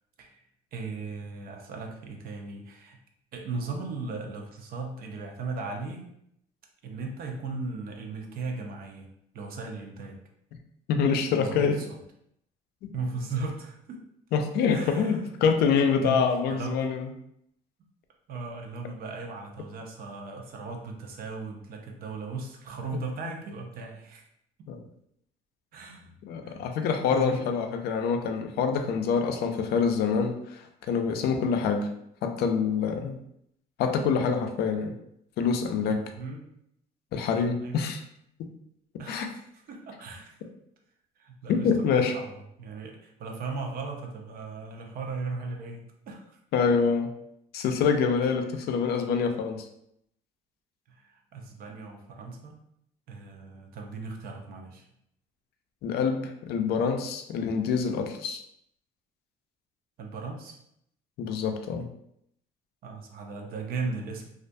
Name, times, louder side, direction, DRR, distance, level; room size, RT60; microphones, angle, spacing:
voice 1, 0.7-3.0 3.3-6.1 6.8-10.2 11.4-12.0 12.9-14.0 14.7-15.3 16.0-16.9 18.3-24.2 24.6-24.7 25.7-26.1 26.4-26.6 27.1-27.5 35.9-36.5 37.6-37.8 39.0-39.4 39.7-40.4 41.2-46.4 50.9-52.6 53.1-54.9 60.0-60.6 62.8-64.3, right 3 dB, 60° right, 2 dB, 0.6 m, -37 dB
voice 2, 10.9-11.8 12.8-12.9 14.3-17.1 24.7-24.8 26.3-31.9 32.2-33.2 33.8-34.9 35.4-36.0 37.1-38.0 39.1-39.3 41.5-42.1 46.5-47.1 47.5-49.7 55.8-58.4 61.2-61.9, left 6 dB, 70° left, 5 dB, 0.4 m, -26 dB
2.4 x 2.1 x 2.5 m, 0.74 s
cardioid pair, 110°, 17 cm